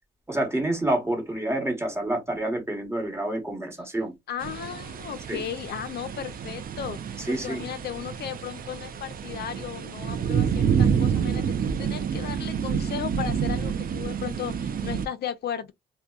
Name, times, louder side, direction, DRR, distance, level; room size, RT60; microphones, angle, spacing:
voice 1, 0.3-4.2 5.3-5.4 7.2-7.6, right 1 dB, 15° right, 1.1 m, -28 dB
voice 2, 4.3-15.7, left 9 dB, 55° left, 0.4 m, -35 dB
sound 1, 4.4-15.1, right 7 dB, 45° right, 0.5 m, -28 dB
2.6 x 2.1 x 2.2 m
cardioid pair, 90°, 20 cm